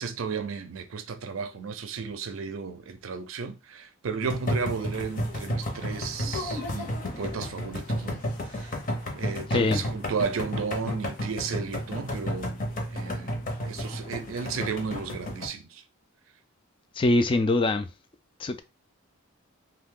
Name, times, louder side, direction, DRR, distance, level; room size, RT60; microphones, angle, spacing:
voice 1, 0.0-6.9 7.2-8.7 9.1-12.6 12.9-15.8, right 5 dB, 70° right, 0.5 m, -34 dB
sound 1, 4.2-15.5, equal, 40° left, 0.8 m, -32 dB
voice 2, 9.5-9.8 17.0-17.9 18.4-18.6, left 2 dB, 25° left, 0.3 m, -23 dB
2.7 x 2.3 x 3.6 m
head